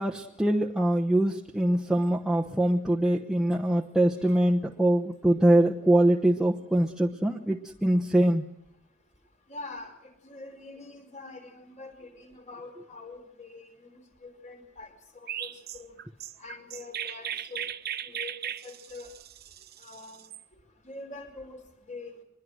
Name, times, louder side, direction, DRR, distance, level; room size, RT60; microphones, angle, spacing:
voice 1, 0.0-8.5, right 1 dB, 5° right, -2 dB, 1.0 m, -23 dB
voice 2, 9.5-9.9 10.2-13.9 14.2-14.9 15.4-15.9 16.4-17.7 18.0-18.4 18.6-19.1 19.8-20.2 20.8-21.6 21.9-22.1, left 3 dB, 35° left, 5 dB, 4.5 m, -44 dB
Chirp tweet, 15.3-20.4, right 10 dB, 50° right, 0.8 m, -37 dB
24.5 x 22.0 x 6.3 m, 0.74 s
head